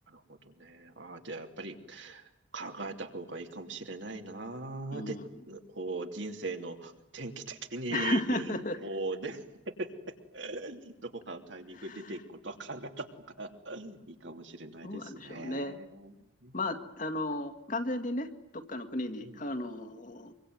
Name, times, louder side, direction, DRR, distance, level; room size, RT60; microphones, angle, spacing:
voice 1, 0.1-5.2 5.5-9.9 10.3-13.1 13.4-16.1 16.4-16.5 19.2-19.4, right 2 dB, 70° right, 5 dB, 3.1 m, -40 dB
voice 2, 7.9-8.8 14.8-15.8 16.5-20.3, left 2 dB, 40° left, 8 dB, 2.0 m, -34 dB
25.0 x 24.5 x 9.6 m, 0.85 s
head